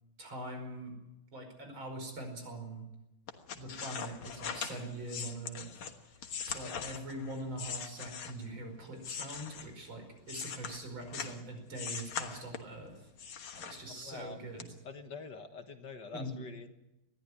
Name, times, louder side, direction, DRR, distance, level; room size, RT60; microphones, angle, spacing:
voice 1, 0.2-0.9 1.3-2.8 3.5-5.7 6.2-13.1 13.5-14.7 16.1-16.3, right 1 dB, 70° right, 4 dB, 5.9 m, -43 dB
sound 1, 3.3-8.6 9.0-11.4 11.7-12.8 13.2-14.2 14.6-14.7, left 7 dB, 90° left, 2.3 m, -41 dB
voice 2, 13.8-14.4 14.9-16.7, left 4 dB, 60° left, 7 dB, 2.0 m, -45 dB
21.0 x 14.5 x 9.8 m, 0.92 s
omnidirectional pair, 2.2 m